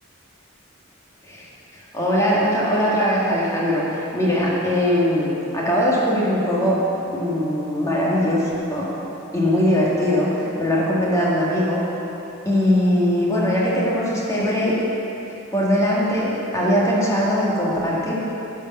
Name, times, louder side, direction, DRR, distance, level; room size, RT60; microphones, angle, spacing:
voice 1, 1.7-6.8 7.1-8.9 9.3-11.8 12.5-14.8 15.5-18.1, equal, 15° left, -6 dB, 1.8 m, -21 dB
11.0 x 5.0 x 6.7 m, 3.0 s
head